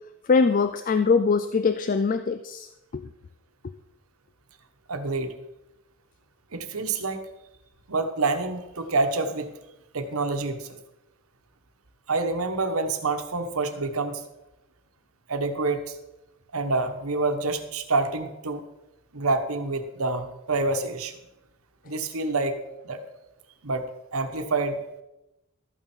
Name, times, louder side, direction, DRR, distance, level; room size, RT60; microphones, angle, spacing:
voice 1, 0.3-2.7 2.9-3.0, left 4 dB, 40° left, 11 dB, 0.4 m, -22 dB
voice 2, 4.9-5.3 6.5-7.2 7.9-9.5 9.9-10.8 12.1-14.2 15.3-16.0 16.5-18.6 19.1-21.2 21.8-22.6 22.8-23.0 23.6-24.8, right 3 dB, 90° right, 8 dB, 1.2 m, -27 dB
13.0 x 8.9 x 4.5 m, 0.92 s
head